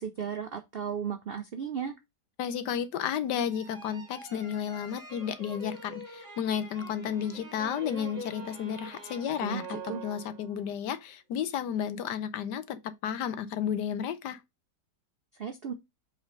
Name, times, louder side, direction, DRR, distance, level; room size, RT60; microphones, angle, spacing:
voice 1, 0.0-1.9 9.2-10.0 15.3-15.7, right 7 dB, 70° right, 0.5 m, -35 dB
voice 2, 2.4-14.4, left 8 dB, 80° left, 1.4 m, -32 dB
sound 1, 3.5-10.7, right 2 dB, 45° right, 1.7 m, -45 dB
5.2 x 3.8 x 5.2 m
omnidirectional pair, 1.8 m